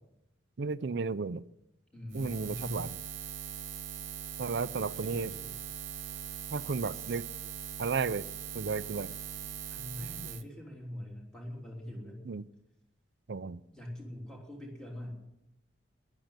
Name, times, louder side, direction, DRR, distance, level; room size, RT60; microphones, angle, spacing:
voice 1, 0.6-1.4 2.1-2.9 4.4-5.3 6.5-7.2 7.8-8.3 8.5-9.1 12.3-12.4 13.3-13.6, right 4 dB, 60° right, 16 dB, 0.5 m, -33 dB
voice 2, 1.9-2.9 4.9-5.5 6.9-7.2 9.7-12.2 13.7-15.2, left 1 dB, 5° left, -1 dB, 3.3 m, -43 dB
Buzz, 2.1-10.4, right 8 dB, 80° right, 0.9 m, -41 dB
13.5 x 11.5 x 7.4 m, 0.85 s
head